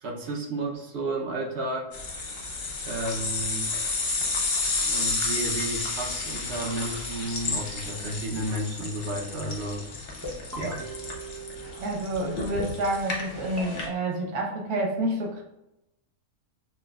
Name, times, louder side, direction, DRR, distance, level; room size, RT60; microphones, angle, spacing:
voice 1, 0.0-1.9 2.8-3.7 4.8-9.8 10.6-10.8, right 2 dB, 55° right, -1 dB, 0.8 m, -32 dB
sound 1, 1.9-13.9, left 3 dB, 50° left, 0.8 m, -31 dB
sound 2, 10.2-12.4 13.6-13.9, right 1 dB, 15° right, 0.5 m, -40 dB
voice 2, 11.8-15.4, right 1 dB, 80° right, 0 dB, 1.3 m, -28 dB
5.9 x 2.3 x 2.3 m, 0.88 s
omnidirectional pair, 1.6 m